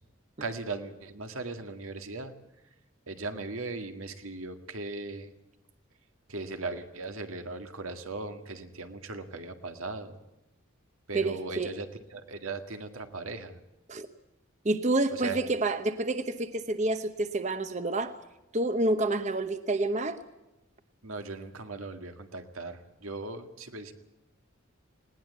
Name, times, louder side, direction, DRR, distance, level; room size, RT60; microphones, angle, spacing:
voice 1, 0.4-2.3 3.1-5.3 6.3-10.2 11.1-13.6 15.1-15.5 21.0-23.9, right 3 dB, 90° right, 6 dB, 2.0 m, -38 dB
voice 2, 11.1-11.7 13.9-14.1 14.6-18.2 18.5-20.2, right 2 dB, 35° right, 10 dB, 0.9 m, -28 dB
19.5 x 18.0 x 8.3 m, 0.94 s
head